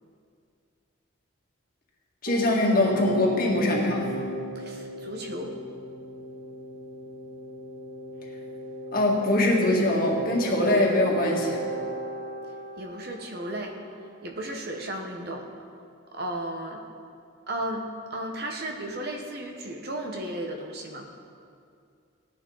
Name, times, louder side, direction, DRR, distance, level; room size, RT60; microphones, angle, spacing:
voice 1, 2.2-4.1 8.9-11.6, left 1 dB, 45° left, -2 dB, 1.9 m, -23 dB
sound 1, 2.3-13.9, right 1 dB, 70° right, 1.5 m, -36 dB
voice 2, 4.5-5.5 12.8-13.8 14.2-15.5 16.1-16.8 17.5-21.1, right 1 dB, 50° right, 3 dB, 1.1 m, -34 dB
16.5 x 10.0 x 4.0 m, 2.4 s
head